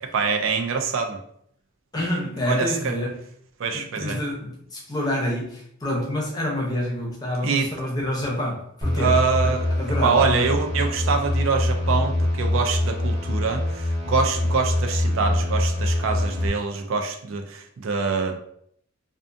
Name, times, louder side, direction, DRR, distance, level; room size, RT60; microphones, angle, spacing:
voice 1, 0.0-1.2 2.5-2.9 3.6-4.2 7.4-7.7 9.0-9.7 10.0-18.4, right 5 dB, 80° right, 4 dB, 0.4 m, -25 dB
voice 2, 1.9-3.2 3.7-9.2 9.8-10.5, left 1 dB, 20° left, -2 dB, 0.6 m, -27 dB
sound 1, 8.8-16.5, left 1 dB, 25° right, 0.7 m, -24 dB
2.4 x 2.4 x 2.5 m, 0.68 s
head